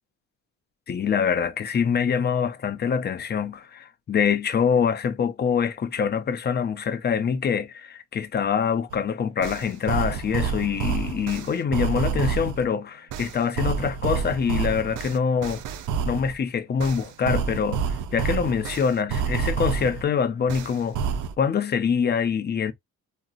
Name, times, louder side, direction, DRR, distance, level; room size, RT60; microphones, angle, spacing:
voice 1, 0.9-15.6 16.1-21.0 21.4-22.7, left 7 dB, 35° left, 0.5 m, -25 dB
sound 1, 8.9-9.0 9.4-12.6 13.1-16.3 16.8-20.0 20.5-21.3, right 6 dB, 85° right, 0.5 m, -28 dB
3.8 x 2.0 x 2.4 m
cardioid pair, 90°, 30 cm